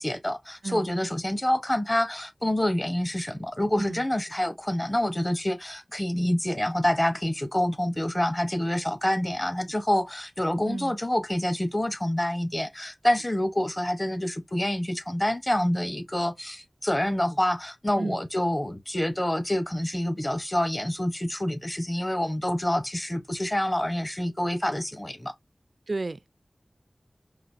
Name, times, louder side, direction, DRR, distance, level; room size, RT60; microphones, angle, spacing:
voice 1, 0.0-25.3, left 1 dB, 25° left, 0.8 m, -27 dB
voice 2, 25.9-26.2, right 3 dB, 65° right, 0.3 m, -32 dB
5.1 x 2.6 x 2.5 m
wide cardioid pair, 50°, 0 cm